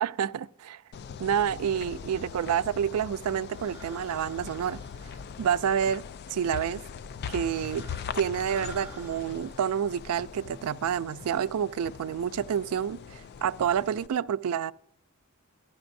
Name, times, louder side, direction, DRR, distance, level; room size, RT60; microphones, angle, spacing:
voice 1, 0.0-0.8 1.2-4.8 5.4-6.0 6.3-6.8 7.3-7.9 8.1-14.7, right 8 dB, 85° right, 0.3 m, -28 dB
sound 1, 0.9-14.1, left 7 dB, 50° left, 0.3 m, -41 dB
sound 2, 1.6-10.8, right 1 dB, 10° right, 2.2 m, -52 dB
14.0 x 11.5 x 2.6 m
head